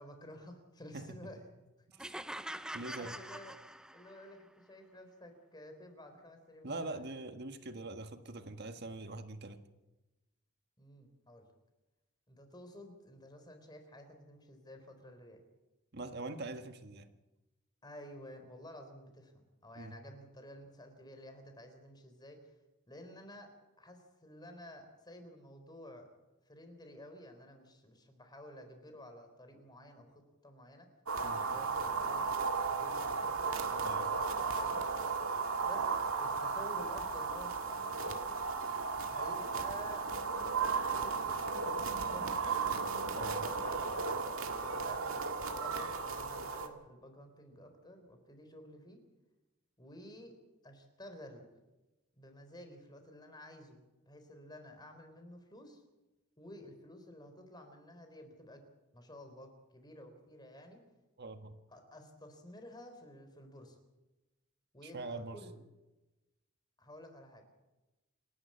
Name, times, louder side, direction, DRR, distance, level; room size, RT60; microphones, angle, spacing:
voice 1, 0.0-1.4 2.3-3.6 3.9-7.0 10.8-11.4 12.3-15.4 17.8-22.5 22.9-23.5 23.8-26.1 26.5-30.9 31.3-32.4 32.7-34.8 35.6-38.2 39.1-40.1 40.9-42.7 44.6-45.3 45.6-49.0 49.8-50.3 50.6-51.4 52.2-53.8 54.0-55.8 56.4-58.6 58.9-60.8 61.7-63.8 64.7-65.6 66.8-67.4, left 1 dB, 20° left, 6 dB, 3.7 m, -52 dB
sound 1, 2.0-4.3, right 1 dB, 5° right, 0.6 m, -44 dB
voice 2, 2.7-3.2 6.6-9.6 15.9-17.1 19.8-20.0 31.2-31.4 33.8-34.0 43.1-43.5 61.2-61.5 64.8-65.4, right 2 dB, 50° right, 8 dB, 1.6 m, -43 dB
sound 2, 31.1-46.7, right 4 dB, 80° right, 2.0 m, -35 dB
28.0 x 11.0 x 8.5 m, 1.1 s
head